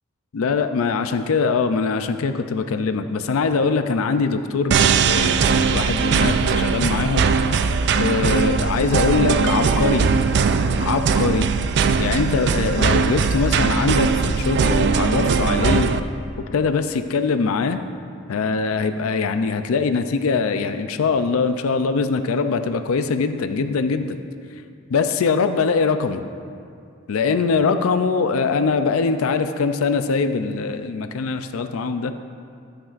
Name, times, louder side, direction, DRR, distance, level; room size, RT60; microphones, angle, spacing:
voice 1, 0.3-7.3 8.0-10.1 10.8-11.5 12.0-16.0 16.5-17.8 18.3-24.2 24.9-26.2 27.1-32.1, left 4 dB, 90° left, 9 dB, 0.4 m, -22 dB
sound 1, 4.7-16.0, right 5 dB, 55° right, 0.3 m, -20 dB
13.5 x 8.7 x 2.5 m, 2.4 s
head